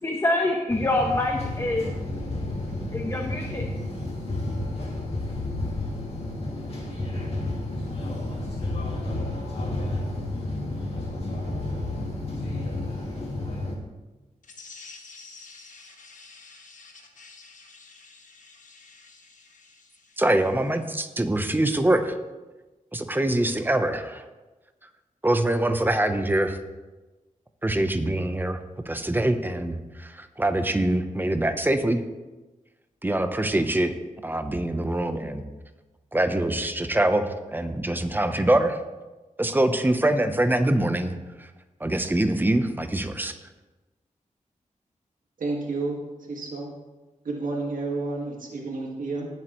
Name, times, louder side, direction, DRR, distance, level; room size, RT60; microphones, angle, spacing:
voice 1, 0.0-1.9 2.9-3.7, left 2 dB, 20° left, 1 dB, 1.0 m, -25 dB
sound 1, 0.7-13.8, left 2 dB, 50° left, 2.4 m, -31 dB
sound 2, 14.4-20.8, left 4 dB, 75° left, 1.3 m, -49 dB
voice 2, 20.2-22.2 22.9-24.3 25.2-26.6 27.6-28.6 28.9-32.0 33.0-33.9 34.2-35.4 36.1-38.8 39.4-41.5 41.8-43.3, right 1 dB, 15° right, 8 dB, 0.8 m, -24 dB
voice 3, 45.4-46.7 47.2-49.3, right 3 dB, 85° right, -1 dB, 1.8 m, -31 dB
18.0 x 7.6 x 3.1 m, 1.2 s
wide cardioid pair, 110°, 14 cm